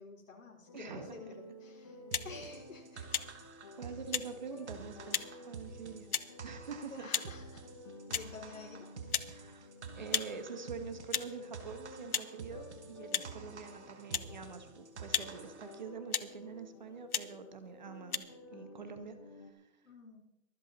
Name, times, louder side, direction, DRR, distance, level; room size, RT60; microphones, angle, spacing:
voice 1, 0.0-2.0 2.2-3.3 6.9-7.6 8.1-8.9 19.8-20.2, left 4 dB, 65° left, 2 dB, 3.5 m, -50 dB
sound 1, 0.7-19.5, left 1 dB, 20° left, 1.0 m, -53 dB
voice 2, 0.7-1.4 3.8-7.1 9.3-19.7, right 5 dB, 30° right, 9 dB, 1.2 m, -46 dB
sound 2, 2.1-2.3 3.1-3.3 4.1-4.3 5.1-5.3 6.1-6.3 7.1-7.3 8.1-8.3 9.1-9.3 10.1-10.3 11.1-11.3 12.1-12.3 13.1-13.3 14.1-14.3 15.1-15.3 16.1-16.3 17.1-17.3 18.1-18.2, left 7 dB, 90° left, 1.1 m, -33 dB
sound 3, 2.1-15.8, right 5 dB, 50° right, 2.1 m, -49 dB
24.0 x 8.3 x 4.0 m, 0.89 s
hypercardioid pair, 170°, 42 cm